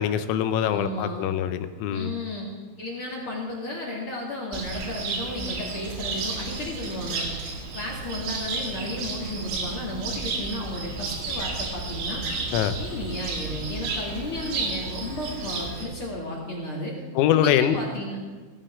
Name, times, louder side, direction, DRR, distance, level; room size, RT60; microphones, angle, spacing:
voice 1, 0.0-2.1 12.5-12.8 17.2-17.8, left 10 dB, 85° left, 10 dB, 3.5 m, -23 dB
voice 2, 0.6-1.3 1.9-2.5 2.8-7.3 7.7-12.2 12.8-17.0 17.3-18.2, left 1 dB, 45° left, -4 dB, 1.7 m, -33 dB
Cricket, 4.5-15.8, right 4 dB, 85° right, 4.9 m, -32 dB
17.5 x 14.5 x 3.7 m, 1.3 s
omnidirectional pair, 6.0 m